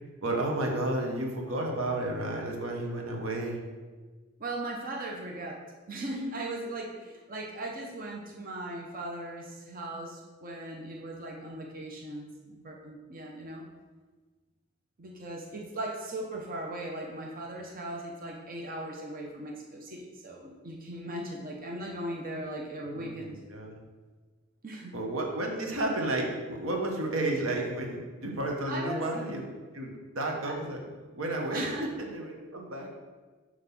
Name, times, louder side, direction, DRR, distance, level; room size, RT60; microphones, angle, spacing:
voice 1, 0.2-3.6 22.9-23.8 24.9-29.5 29.7-30.8 31.1-31.7 32.0-32.9, right 1 dB, 90° right, 1 dB, 1.3 m, -32 dB
voice 2, 4.4-13.7 15.0-23.4 24.6-24.9 28.6-29.1 30.4-30.6 31.5-31.9, right 1 dB, 45° right, -1 dB, 0.9 m, -38 dB
5.7 x 4.7 x 6.0 m, 1.3 s
head